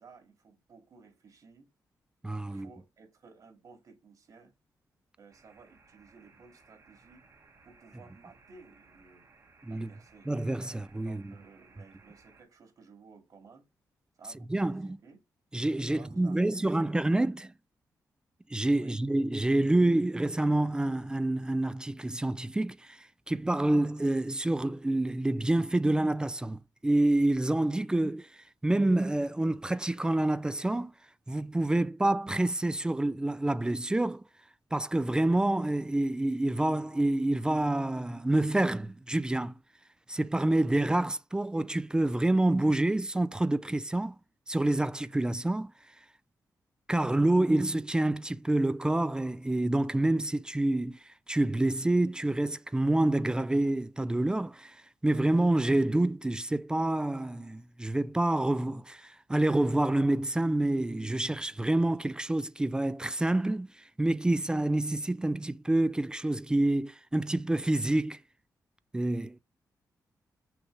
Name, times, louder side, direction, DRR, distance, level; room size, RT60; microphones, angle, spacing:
voice 1, 0.0-1.7 2.5-4.5 5.2-7.3 7.6-9.3 9.7-10.3 11.0-13.6 14.2-15.2 15.8-17.0 18.8-19.0, right 4 dB, 60° right, 2.4 m, -55 dB
voice 2, 2.2-2.7 9.6-9.9 10.3-11.2 14.5-15.0 15.5-17.5 18.5-30.9 31.3-34.3 34.7-39.6 40.1-44.2 44.5-45.7 46.9-68.2 68.9-69.4, right 1 dB, 10° right, 0.4 m, -27 dB
sound 1, 5.3-12.4, right 4 dB, 45° right, 1.6 m, -60 dB
6.2 x 3.3 x 4.9 m
cardioid pair, 105°, 7 cm